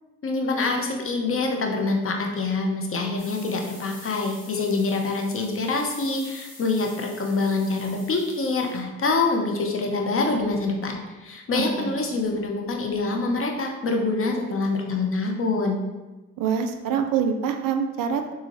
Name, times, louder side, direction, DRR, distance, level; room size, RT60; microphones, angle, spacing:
voice 1, 0.2-15.8, left 3 dB, 35° left, 2 dB, 0.7 m, -25 dB
sound 1, 3.2-8.8, left 2 dB, 75° left, 1.3 m, -46 dB
voice 2, 11.6-11.9 16.4-18.3, right 7 dB, 60° right, 7 dB, 0.5 m, -25 dB
3.6 x 2.8 x 2.9 m, 1.2 s
hypercardioid pair, 45°, 39 cm